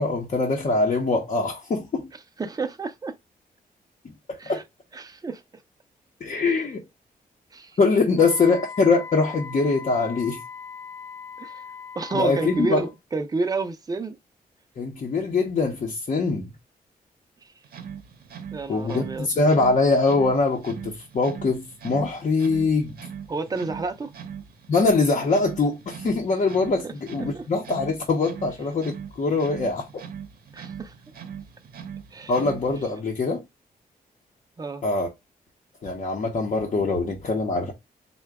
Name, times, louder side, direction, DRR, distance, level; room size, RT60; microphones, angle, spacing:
voice 1, 0.0-2.1 4.3-4.6 6.2-6.8 7.8-10.4 12.1-12.9 14.8-16.5 18.7-22.9 24.7-29.9 32.3-33.4 34.8-35.1 35.8-37.7, left 3 dB, 50° left, 0.8 m, -23 dB
voice 2, 2.4-3.1 4.4-4.6 4.9-5.4 6.4-6.6 7.5-7.8 11.4-11.6 12.0-14.2 17.4-17.5 18.5-19.3 23.3-24.1 26.8-26.9 27.2-27.5 30.5-30.9 32.1-32.3 34.6-34.8, right 3 dB, 25° right, 0.6 m, -30 dB
Wind instrument woodwind instrument, 8.2-13.0, left 6 dB, 15° left, 0.8 m, -40 dB
sound 1, 17.6-32.9, right 7 dB, 80° right, 0.7 m, -40 dB
3.8 x 2.3 x 3.4 m
wide cardioid pair, 120°, 15 cm